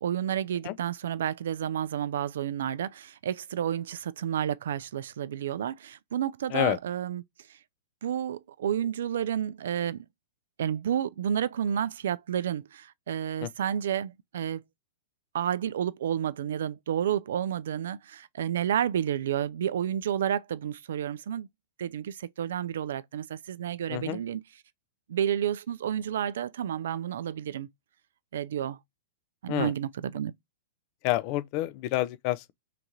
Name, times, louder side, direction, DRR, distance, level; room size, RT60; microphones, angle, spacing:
voice 1, 0.0-7.2 8.0-10.1 10.6-14.6 15.3-21.5 21.8-24.4 25.1-27.7 28.3-28.8 29.4-30.3, right 9 dB, 60° right, 0.3 m, -30 dB
voice 2, 23.9-24.2 29.5-29.7 31.0-32.5, left 16 dB, 40° left, 0.4 m, -28 dB
3.8 x 3.4 x 2.8 m
figure-of-eight pair, 105°, 0 cm